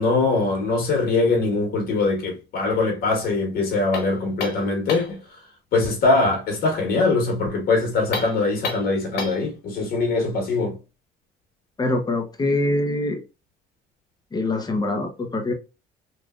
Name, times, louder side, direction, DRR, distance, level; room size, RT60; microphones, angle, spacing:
voice 1, 0.0-5.2 5.7-10.8, left 3 dB, 65° left, 1.4 m, -22 dB
sound 1, 3.9-5.2 8.0-9.5, left 4 dB, 85° left, 1.3 m, -31 dB
voice 2, 11.8-13.2 14.3-15.5, left 2 dB, 25° left, 0.8 m, -24 dB
3.4 x 2.6 x 2.4 m
cardioid pair, 110°, 17 cm